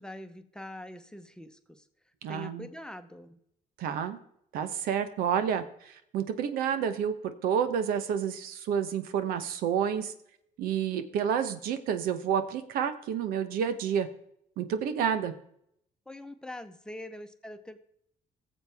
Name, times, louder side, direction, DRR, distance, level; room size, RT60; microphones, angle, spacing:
voice 1, 0.0-1.8 2.3-3.4 16.1-17.9, left 1 dB, 5° left, 8 dB, 0.9 m, -44 dB
voice 2, 2.2-2.7 3.8-4.2 4.5-10.1 10.6-14.1 14.6-15.3, right 8 dB, 85° right, 10 dB, 1.0 m, -29 dB
17.0 x 7.3 x 3.5 m, 0.72 s
cardioid pair, 105°, 15 cm